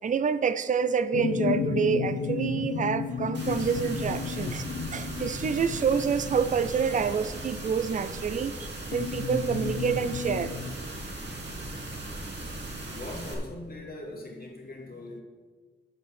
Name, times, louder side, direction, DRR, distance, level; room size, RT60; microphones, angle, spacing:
voice 1, 0.0-4.7 4.9-10.5, right 6 dB, 35° right, 14 dB, 0.5 m, -27 dB
sound 1, 1.1-8.0 8.9-10.7, left 5 dB, 90° left, 0.7 m, -33 dB
sound 2, 3.3-13.3, right 2 dB, 55° right, 2.4 m, -38 dB
voice 2, 12.9-15.2, left 1 dB, 45° left, -1 dB, 2.2 m, -41 dB
9.0 x 5.3 x 7.0 m, 1.4 s
cardioid pair, 90°, 21 cm